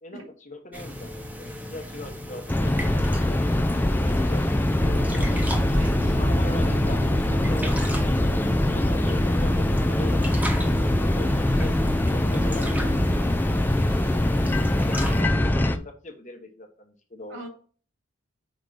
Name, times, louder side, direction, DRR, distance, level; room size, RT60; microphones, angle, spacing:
voice 1, 0.0-2.8 3.1-4.4 4.8-5.3 6.1-7.0 7.3-7.7 8.1-8.4 8.7-10.2 10.6-12.9 14.1-17.4, left 1 dB, 35° left, 4 dB, 1.2 m, -41 dB
sound 1, 0.7-15.2, equal, 10° right, 0.9 m, -36 dB
sound 2, 2.5-15.8, left 1 dB, 10° left, 0.4 m, -23 dB
sound 3, 4.8-13.2, right 1 dB, 35° right, 0.7 m, -33 dB
voice 2, 5.7-6.3 10.6-10.9 17.3-17.5, right 1 dB, 75° right, 2 dB, 2.3 m, -42 dB
5.2 x 4.8 x 3.9 m, 0.42 s
head